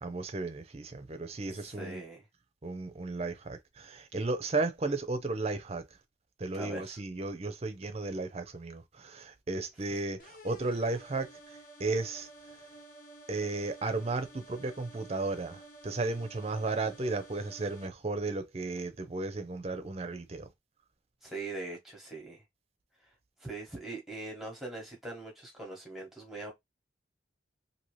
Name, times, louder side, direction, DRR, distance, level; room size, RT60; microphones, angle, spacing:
voice 1, 0.0-2.0 2.6-5.8 6.4-12.3 13.3-20.5, right 3 dB, 35° right, 0.5 m, -34 dB
voice 2, 1.5-2.3 6.5-7.0 21.2-22.4 23.4-26.5, right 2 dB, ahead, 1.0 m, -41 dB
sound 1, 10.2-17.9, right 2 dB, 45° left, 0.7 m, -52 dB
2.8 x 2.7 x 3.1 m
head